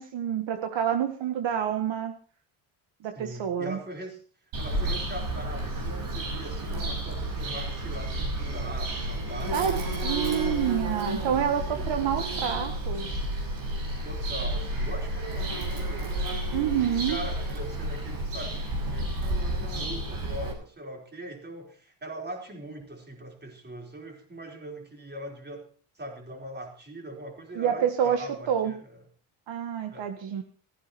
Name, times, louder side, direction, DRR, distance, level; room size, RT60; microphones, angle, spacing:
voice 1, 0.0-2.1 3.0-3.8 9.5-13.1 16.5-17.2 27.5-28.7 29.5-30.4, right 9 dB, 65° right, 6 dB, 1.7 m, -28 dB
voice 2, 3.1-4.2 4.6-10.6 11.7-12.1 14.0-16.2 16.7-25.7 25.9-29.0 29.9-30.1, right 1 dB, 20° right, 1 dB, 4.5 m, -41 dB
Bird vocalization bird call bird song, 4.5-20.5, right 1 dB, 90° right, 6.0 m, -31 dB
15.5 x 15.0 x 4.3 m, 0.43 s
cardioid pair, 130°, 48 cm